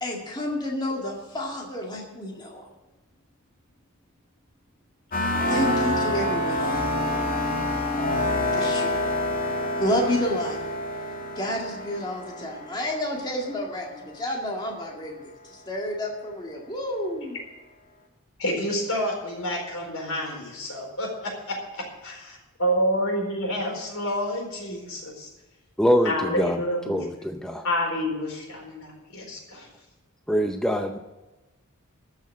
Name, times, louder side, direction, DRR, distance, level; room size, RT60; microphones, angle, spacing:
voice 1, 0.0-2.7 5.5-7.0 8.5-9.1 9.8-10.6 11.4-15.2 15.5-17.4, left 1 dB, 20° left, -1 dB, 2.0 m, -30 dB
sound 1, 5.1-13.7, left 1 dB, 40° left, 2.1 m, -27 dB
voice 2, 18.4-25.3 26.0-27.1 27.6-29.7, equal, 70° left, 1 dB, 4.2 m, -29 dB
voice 3, 25.8-26.6 26.9-27.6 30.3-31.0, equal, 5° left, 5 dB, 0.5 m, -24 dB
13.5 x 6.4 x 8.4 m, 1.1 s
head